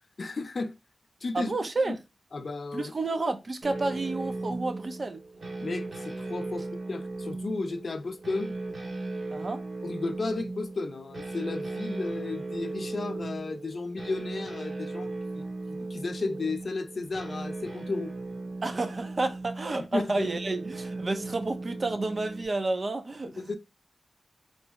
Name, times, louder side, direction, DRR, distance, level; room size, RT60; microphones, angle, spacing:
voice 1, 0.2-0.7 1.2-1.5 1.8-1.9 2.3-2.9 5.6-8.5 9.8-18.1 19.8-20.3 23.4-23.6, left 3 dB, 60° left, 0.4 m, -34 dB
voice 2, 1.3-2.0 2.7-5.2 9.3-9.6 18.6-23.5, right 2 dB, 50° right, 0.5 m, -30 dB
sound 1, 3.6-22.5, right 2 dB, 70° right, 1.1 m, -37 dB
3.8 x 2.0 x 3.4 m
cardioid pair, 65°, 0 cm